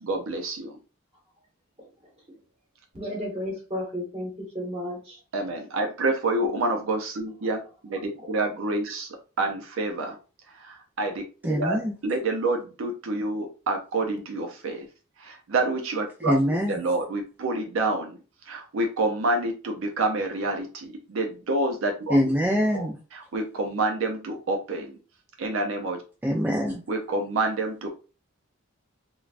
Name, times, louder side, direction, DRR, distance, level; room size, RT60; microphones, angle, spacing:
voice 1, 0.0-0.8 5.3-10.2 10.5-11.2 11.5-14.9 15.2-18.2 18.5-22.2 22.7-25.0 25.4-26.0 26.9-27.9, right 2 dB, 65° right, 3 dB, 0.5 m, -28 dB
voice 2, 2.9-5.2 8.2-8.3, equal, 30° right, -1 dB, 1.1 m, -33 dB
voice 3, 11.4-11.9 16.2-16.8 22.1-23.0 26.2-26.8, equal, 10° right, -1 dB, 0.3 m, -24 dB
3.2 x 2.2 x 2.4 m, 0.34 s
head